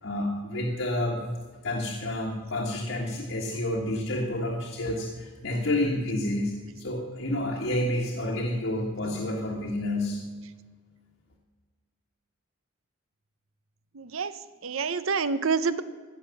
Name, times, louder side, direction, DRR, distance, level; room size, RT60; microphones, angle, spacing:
voice 1, 0.0-1.2 1.6-10.2, left 1 dB, 65° left, -1 dB, 1.5 m, -29 dB
voice 2, 13.9-14.3 14.6-15.8, right 5 dB, 80° right, 14 dB, 0.7 m, -27 dB
15.5 x 6.6 x 6.9 m, 1.5 s
head